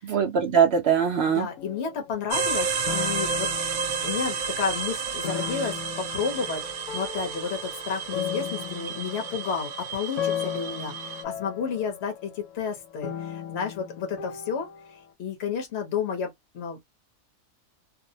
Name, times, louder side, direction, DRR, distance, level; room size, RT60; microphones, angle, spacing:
voice 1, 0.0-1.5, right 7 dB, 65° right, 0.6 m, -22 dB
sound 1, 1.1-2.5 2.9-4.6 5.2-15.0, left 9 dB, 85° left, 1.0 m, -37 dB
voice 2, 1.3-3.5 4.0-6.6 6.9-16.8, left 6 dB, 55° left, 1.0 m, -31 dB
sound 2, 2.3-11.2, right 5 dB, 80° right, 1.1 m, -31 dB
2.6 x 2.0 x 2.7 m
omnidirectional pair, 1.5 m